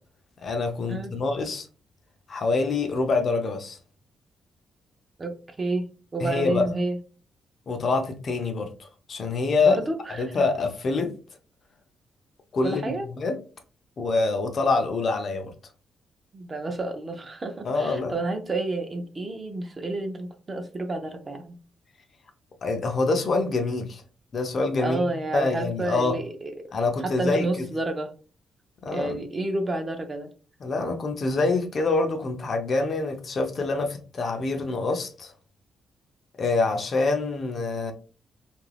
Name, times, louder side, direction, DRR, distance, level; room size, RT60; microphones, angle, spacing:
voice 1, 0.4-1.7 2.3-3.8 6.2-6.7 7.7-9.8 10.2-11.1 12.5-13.4 14.0-15.5 17.6-18.1 22.6-24.0 24.3-26.2 26.7-27.7 28.8-29.2 30.6-35.3 36.4-37.9, left 3 dB, 40° left, 0.5 m, -26 dB
voice 2, 5.2-5.9 6.1-7.0 9.6-10.4 12.6-13.1 16.3-21.6 24.8-26.5 27.0-28.1 28.9-30.3, right 2 dB, 25° right, 0.4 m, -30 dB
2.6 x 2.4 x 3.2 m
cardioid pair, 155°, 0 cm